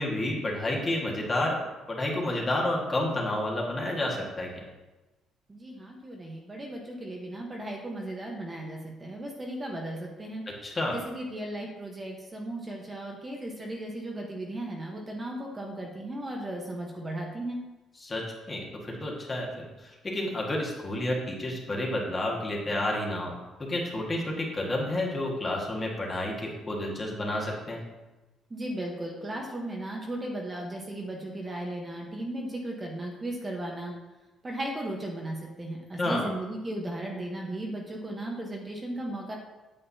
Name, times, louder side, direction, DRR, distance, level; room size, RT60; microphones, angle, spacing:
voice 1, 0.0-1.6 1.9-4.6 10.6-10.9 18.0-18.2 18.5-27.8 36.0-36.3, left 1 dB, 25° left, -2 dB, 1.7 m, -30 dB
voice 2, 5.5-10.4 10.9-17.6 28.5-33.9 34.4-39.4, right 1 dB, 20° right, -1 dB, 1.1 m, -36 dB
8.8 x 7.7 x 2.8 m, 1.1 s
cardioid pair, 125°, 0 cm